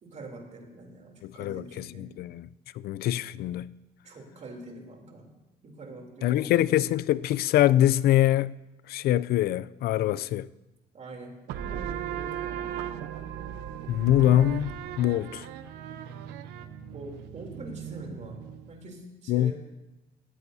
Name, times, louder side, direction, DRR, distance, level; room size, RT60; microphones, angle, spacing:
voice 1, 0.0-2.1 4.0-5.3 5.6-6.6 10.9-12.8 16.9-18.4 18.7-19.5, right 2 dB, 45° right, 3.2 m, -44 dB
voice 2, 1.2-2.5 2.8-3.7 6.2-8.6 8.9-10.5 13.9-15.5 19.3-19.5, left 13 dB, 65° left, 0.4 m, -24 dB
sound 1, 11.5-18.8, right 9 dB, 90° right, 0.8 m, -37 dB
18.5 x 14.0 x 2.7 m
cardioid pair, 110°, 17 cm